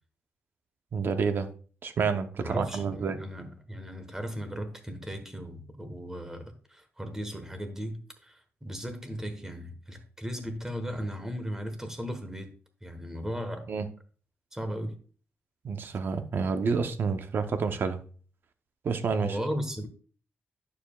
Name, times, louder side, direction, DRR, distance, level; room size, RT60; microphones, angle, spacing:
voice 1, 0.9-1.5 1.8-3.2 13.7-13.9 15.6-18.0 18.8-19.4, right 5 dB, 55° right, 0.7 m, -29 dB
voice 2, 2.4-12.5 12.8-13.7 14.5-15.0 19.2-19.9, equal, 10° right, 1.2 m, -36 dB
9.3 x 7.0 x 2.3 m
wide cardioid pair, 140°, 4 cm